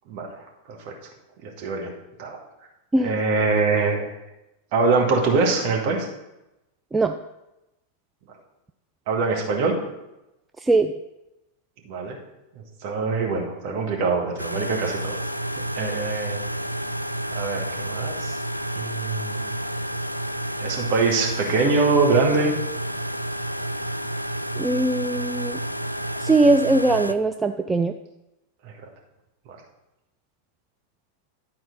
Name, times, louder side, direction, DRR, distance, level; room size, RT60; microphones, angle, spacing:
voice 1, 1.4-1.9 2.2-2.4 3.0-4.1 4.7-6.1 9.1-9.8 11.9-12.2 12.8-15.2 15.8-16.4 17.3-18.4 18.8-19.5 20.6-22.6 28.7-28.8, right 3 dB, 45° right, 0 dB, 2.0 m, -23 dB
sound 1, 14.4-27.1, right 1 dB, 90° left, 0.3 m, -30 dB
voice 2, 24.6-25.6 26.2-27.9, right 2 dB, 10° right, 5 dB, 0.4 m, -20 dB
11.5 x 4.3 x 5.3 m, 0.92 s
figure-of-eight pair, 90°, 0 cm